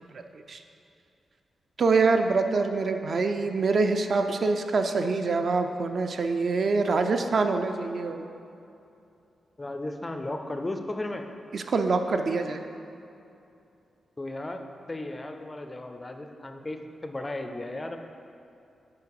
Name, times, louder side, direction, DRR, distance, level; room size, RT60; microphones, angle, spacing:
voice 1, 1.8-8.3 11.5-12.6, right 4 dB, 45° right, 6 dB, 0.4 m, -25 dB
voice 2, 9.6-11.3 14.2-18.0, left 2 dB, 15° left, 6 dB, 0.4 m, -35 dB
8.5 x 4.9 x 4.7 m, 2.7 s
wide cardioid pair, 165°, 0 cm